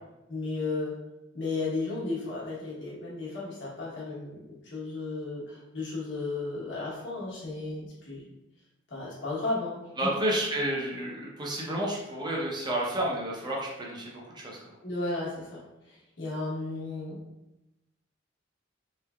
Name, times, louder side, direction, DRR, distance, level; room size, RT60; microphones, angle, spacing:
voice 1, 0.3-1.0 1.3-8.2 8.9-10.1 14.8-17.2, left 3 dB, 80° left, -6 dB, 1.1 m, -34 dB
voice 2, 10.0-14.6, right 1 dB, 25° right, -4 dB, 0.7 m, -30 dB
3.3 x 3.1 x 2.3 m, 0.97 s
head